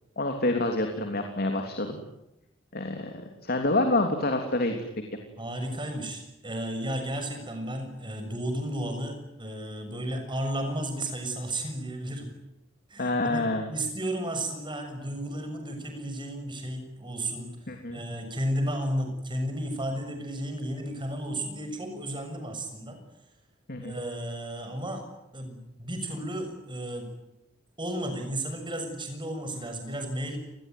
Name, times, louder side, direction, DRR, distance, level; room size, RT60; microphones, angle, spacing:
voice 1, 0.2-2.0 2.7-4.8 13.0-13.7 17.7-18.0 23.7-24.0, left 2 dB, 55° left, 4 dB, 3.2 m, -27 dB
voice 2, 5.4-12.4 12.9-17.5 17.9-23.0 23.8-25.0 25.3-27.1 27.8-30.4, right 1 dB, 25° right, 5 dB, 6.8 m, -33 dB
28.5 x 20.5 x 9.4 m, 0.88 s
head